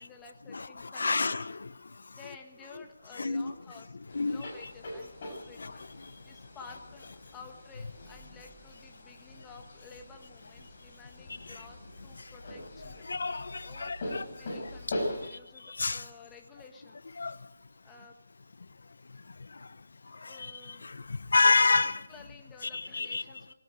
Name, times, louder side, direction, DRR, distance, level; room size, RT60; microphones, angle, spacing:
voice 1, 0.0-1.3 2.1-5.8 6.2-13.1 13.6-17.0 17.8-18.2 20.2-20.8 22.1-23.5, left 4 dB, 5° left, 1.6 m, -53 dB
voice 2, 0.9-1.6 3.2-3.5 4.1-4.5 5.6-5.7 13.1-14.2 15.8-16.0 17.2-17.3 20.4-20.5 20.8-20.9 21.3-22.0 22.7-23.2, left 3 dB, 75° left, 1.0 m, -27 dB
sound 1, 4.1-15.3, left 1 dB, 30° left, 6.7 m, -42 dB
21.0 x 18.0 x 7.8 m
hypercardioid pair, 175°, 0 cm